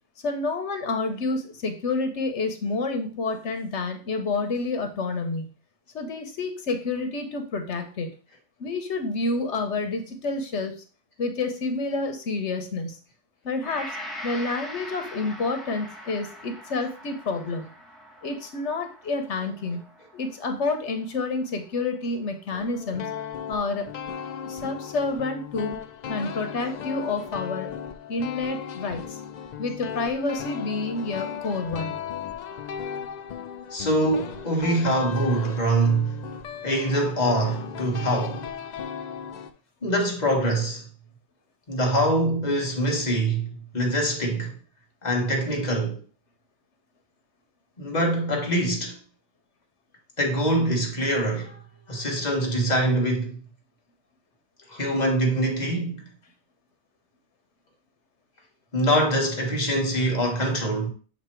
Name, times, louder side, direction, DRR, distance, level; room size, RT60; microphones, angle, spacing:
voice 1, 0.2-5.5 5.9-8.1 8.6-10.7 11.2-13.0 13.4-14.0 14.2-17.7 18.2-19.8 20.1-23.1 23.5-23.9 24.4-25.8 26.1-27.7 28.1-29.2 29.6-31.9, left 3 dB, 85° left, 1.3 m, -29 dB
Gong, 13.6-21.9 22.4-22.5, left 1 dB, ahead, 0.9 m, -42 dB
sound 1, 22.5-39.5, left 8 dB, 60° left, 0.5 m, -36 dB
voice 2, 33.7-36.2 36.6-38.4 39.8-40.9 41.7-44.5 45.0-46.0 47.8-49.0 50.2-51.6 51.9-53.4 54.7-56.1 58.7-60.9, right 1 dB, 40° left, 1.4 m, -24 dB
7.4 x 2.9 x 4.4 m
omnidirectional pair, 1.2 m